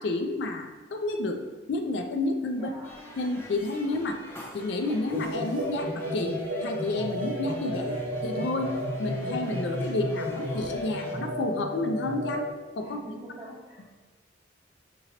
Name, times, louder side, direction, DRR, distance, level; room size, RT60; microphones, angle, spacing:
voice 1, 0.0-1.4 1.7-2.7 3.2-4.2 4.5-8.0 8.2-12.5 12.8-13.0, left 2 dB, 70° left, 5 dB, 0.4 m, -30 dB
voice 2, 2.5-2.9 12.8-13.9, right 1 dB, 20° right, -9 dB, 1.4 m, -44 dB
sound 1, 2.8-11.2, equal, 10° left, 0.5 m, -46 dB
sound 2, 5.1-12.5, equal, 55° right, 0.9 m, -32 dB
5.2 x 2.8 x 2.9 m, 1.3 s
head